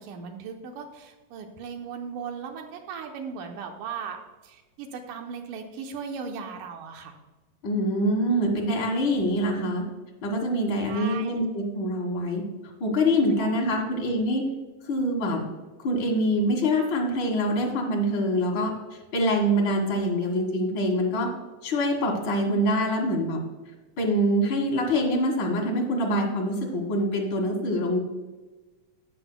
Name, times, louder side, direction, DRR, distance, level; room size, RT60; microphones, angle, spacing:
voice 1, 0.0-4.2 4.4-7.1 10.9-11.3 13.4-13.5, right 6 dB, 85° right, 4 dB, 2.4 m, -37 dB
voice 2, 7.6-9.8 10.2-12.4 12.8-14.5 14.9-15.4 15.8-18.7 19.1-21.3 21.6-23.4 24.0-28.0, equal, 45° left, 0 dB, 2.1 m, -25 dB
12.0 x 8.1 x 2.2 m, 1.2 s
omnidirectional pair, 3.7 m